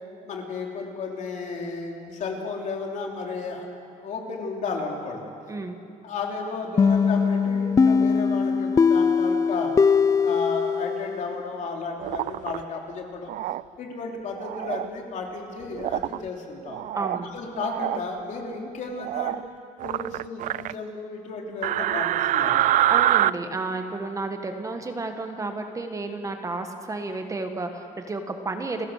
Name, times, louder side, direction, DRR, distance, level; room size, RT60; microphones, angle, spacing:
voice 1, 0.2-3.7 4.0-5.3 6.0-9.7 10.2-13.3 13.8-16.8 17.2-19.4 19.8-22.7, left 4 dB, 60° left, 1 dB, 3.3 m, -33 dB
voice 2, 5.5-5.8 16.9-17.3 22.9-28.9, right 3 dB, 25° right, 6 dB, 1.4 m, -32 dB
sound 1, 6.8-11.5, left 5 dB, 25° left, 0.5 m, -21 dB
sound 2, 12.0-12.6 13.3-13.6 14.4-14.9 15.8-16.2 16.6-17.2 17.6-18.0 19.0-19.4 19.8-20.7 21.6-23.3, right 13 dB, 70° right, 0.4 m, -25 dB
28.5 x 15.0 x 6.5 m, 2.5 s
cardioid pair, 135°, 14 cm